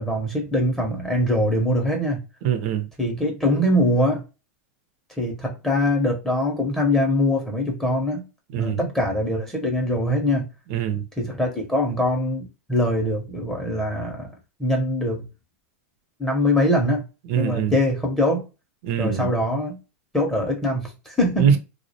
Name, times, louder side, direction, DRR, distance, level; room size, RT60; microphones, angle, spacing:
voice 1, 0.0-2.2 3.0-4.2 5.1-8.3 8.5-10.5 11.2-15.2 16.2-17.0 17.3-18.5 19.0-19.8 20.1-21.6, left 1 dB, 5° left, 0.6 m, -23 dB
voice 2, 2.4-2.9 8.5-8.9 10.7-11.0 17.3-17.7 18.8-19.3 21.4-21.6, right 8 dB, 60° right, 0.5 m, -22 dB
2.3 x 2.0 x 2.7 m
hypercardioid pair, 125°, 8 cm